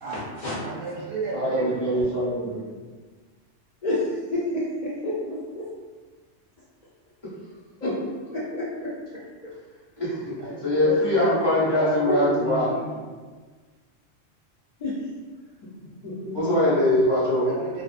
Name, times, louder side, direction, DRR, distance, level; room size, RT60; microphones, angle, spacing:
voice 1, 0.1-0.6 3.8-5.7 7.8-7.9 8.3-8.9 14.8-15.0 16.0-16.4, left 1 dB, 65° left, -9 dB, 0.4 m, -29 dB
voice 2, 0.6-2.1 10.4-13.0 17.5-17.8, right 2 dB, 60° right, -5 dB, 0.7 m, -32 dB
voice 3, 1.3-2.7 7.8-7.9 10.0-10.4 10.6-12.7 16.3-17.5, left 1 dB, 25° left, -9 dB, 0.7 m, -22 dB
2.4 x 2.2 x 2.4 m, 1.4 s
omnidirectional pair, 1.3 m